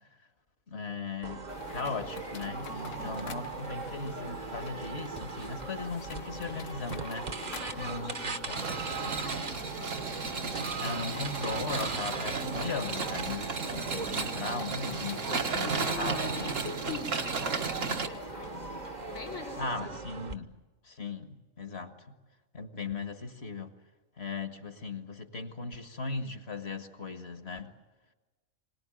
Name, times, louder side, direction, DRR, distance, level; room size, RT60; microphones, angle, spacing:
voice 1, 0.7-8.8 10.8-16.5 19.6-20.5 20.8-21.9 22.5-23.7 24.2-27.7, left 4 dB, 55° left, 7 dB, 1.8 m, -38 dB
sound 1, 1.2-20.3, right 5 dB, 35° right, 1.1 m, -40 dB
sound 2, 1.5-19.6, left 7 dB, 70° left, 1.3 m, -47 dB
voice 2, 2.7-3.4 7.5-10.2 15.6-18.7 19.1-20.1, left 4 dB, 90° left, -6 dB, 3.9 m, -43 dB
sound 3, 8.6-18.1, right 5 dB, 70° right, 1.7 m, -34 dB
26.0 x 19.0 x 9.1 m, 1.2 s
omnidirectional pair, 1.4 m